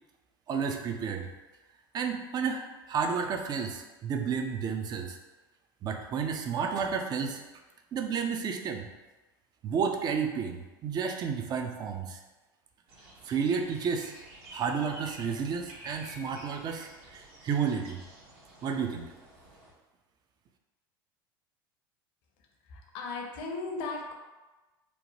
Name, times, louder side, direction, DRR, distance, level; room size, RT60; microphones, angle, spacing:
voice 1, 0.5-1.3 1.9-2.6 2.9-5.2 5.8-7.4 7.9-8.9 9.6-12.2 13.3-14.1 14.5-18.0 18.6-19.1, right 6 dB, 35° right, 5 dB, 0.4 m, -31 dB
sound 1, 12.9-19.7, right 1 dB, 60° right, 0.9 m, -51 dB
voice 2, 22.6-24.1, left 3 dB, 60° left, 1 dB, 0.6 m, -36 dB
2.9 x 2.1 x 2.8 m, 1.1 s
hypercardioid pair, 80°, 12 cm